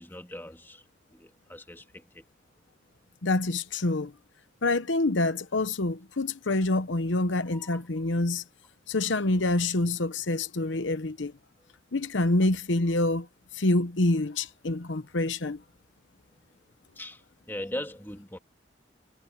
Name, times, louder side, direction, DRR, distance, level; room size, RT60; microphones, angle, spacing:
voice 1, 0.0-2.2 7.5-7.8 17.0-18.4, left 1 dB, 10° left, 2.2 m, -40 dB
voice 2, 3.2-4.1 4.6-8.4 8.9-11.3 11.9-13.3 13.5-15.6, left 2 dB, 85° left, 1.0 m, -26 dB
head